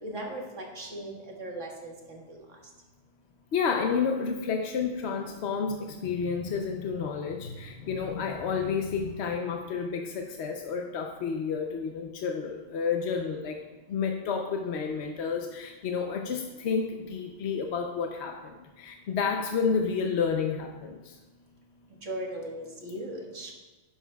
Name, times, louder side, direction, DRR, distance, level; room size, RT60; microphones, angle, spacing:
voice 1, 0.0-2.4 7.8-8.0 22.0-23.5, right 1 dB, 85° right, -1 dB, 1.9 m, -38 dB
voice 2, 3.5-13.6 13.9-21.2, left 6 dB, 65° left, 2 dB, 0.9 m, -30 dB
12.0 x 10.0 x 2.3 m, 1.2 s
omnidirectional pair, 1.2 m